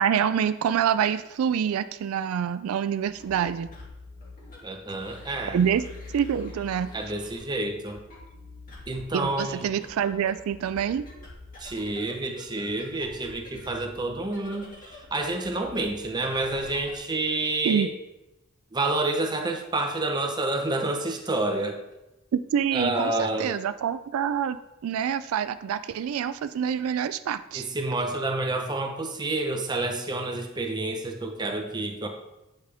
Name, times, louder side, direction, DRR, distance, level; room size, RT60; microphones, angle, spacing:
voice 1, 0.0-3.7 5.5-5.8 6.1-6.9 9.1-11.0 17.6-17.9 22.3-24.6 24.8-27.6, right 8 dB, 80° right, 13 dB, 0.3 m, -26 dB
sound 1, 3.0-17.1, left 3 dB, 40° left, 2.0 m, -46 dB
voice 2, 4.6-5.6 6.9-8.0 8.9-9.7 11.6-17.9 18.7-21.8 22.7-23.5 27.5-32.1, right 2 dB, 20° right, 3 dB, 0.8 m, -29 dB
8.9 x 5.1 x 3.4 m, 0.96 s
head